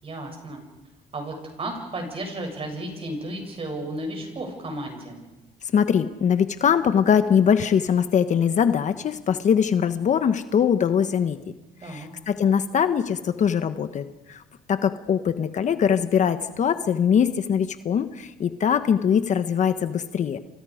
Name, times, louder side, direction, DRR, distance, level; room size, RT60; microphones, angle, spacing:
voice 1, 0.0-0.6 1.1-5.2 11.8-12.1, right 1 dB, 35° right, 3 dB, 7.7 m, -33 dB
voice 2, 5.7-11.4 11.8-14.4 14.7-20.4, left 7 dB, 45° left, 10 dB, 1.2 m, -22 dB
29.5 x 27.0 x 5.1 m, 1.0 s
cardioid pair, 110°, 17 cm